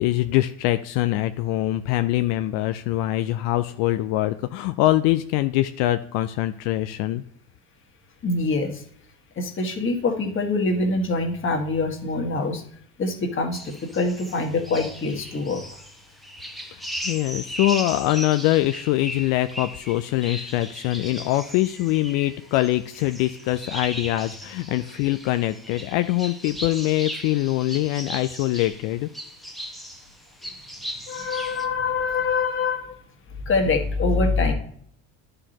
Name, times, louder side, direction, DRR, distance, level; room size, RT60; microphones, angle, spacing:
voice 1, 0.0-7.2 16.7-29.1, left 16 dB, 80° left, 11 dB, 0.5 m, -23 dB
voice 2, 8.2-8.8 9.3-12.6 13.0-15.6 31.1-32.9 33.4-34.5, left 3 dB, 35° left, 3 dB, 1.7 m, -24 dB
sound 1, 13.5-31.7, equal, ahead, 0.9 m, -37 dB
11.0 x 4.9 x 2.9 m, 0.65 s
supercardioid pair, 105°, 33 cm